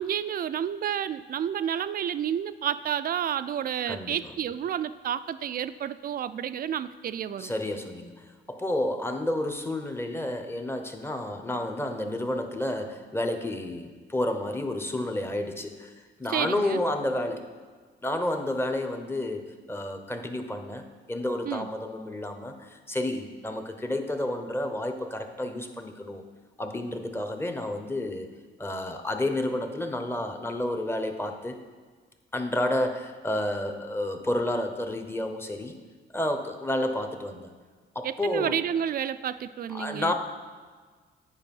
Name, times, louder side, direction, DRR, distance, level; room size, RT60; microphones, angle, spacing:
voice 1, 0.0-7.5 16.3-16.8 21.5-21.7 38.0-40.1, right 9 dB, 50° right, 14 dB, 0.4 m, -30 dB
voice 2, 3.9-4.3 7.4-15.9 16.2-17.5 18.0-26.2 26.6-28.3 28.6-31.6 32.3-35.7 36.1-37.5 37.9-38.6 39.7-40.1, left 1 dB, 10° left, 6 dB, 0.9 m, -30 dB
9.7 x 4.9 x 5.4 m, 1.5 s
cardioid pair, 90°, 20 cm